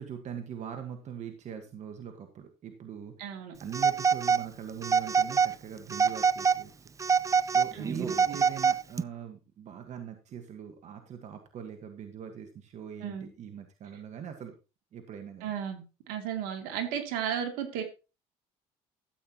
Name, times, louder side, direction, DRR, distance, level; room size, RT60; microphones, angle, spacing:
voice 1, 0.0-3.3 3.6-6.9 7.5-14.5 14.9-15.5, right 8 dB, 50° right, 6 dB, 1.5 m, -41 dB
voice 2, 3.2-3.5 7.7-8.0 13.0-13.3 15.4-17.8, right 8 dB, 80° right, 5 dB, 2.7 m, -34 dB
Telephone, 3.7-4.5 4.8-5.5 5.9-6.6 7.0-9.0, right 6 dB, 20° right, 0.4 m, -25 dB
13.0 x 8.8 x 3.0 m, 0.30 s
supercardioid pair, 85°, 15 cm